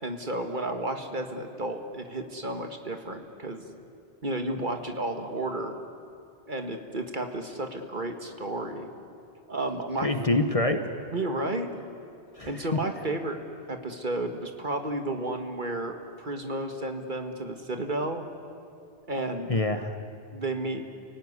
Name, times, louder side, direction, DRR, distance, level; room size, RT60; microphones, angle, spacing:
voice 1, 0.0-3.6 4.2-5.8 6.5-8.9 9.5-10.1 11.1-11.7 12.5-13.4 13.7-18.2 19.1-19.5 20.3-20.8, right 2 dB, 45° right, 5 dB, 1.9 m, -32 dB
voice 2, 10.0-11.1 12.4-12.8 19.5-19.9, left 2 dB, 30° left, 7 dB, 1.2 m, -26 dB
29.5 x 18.0 x 9.8 m, 2.5 s
omnidirectional pair, 1.1 m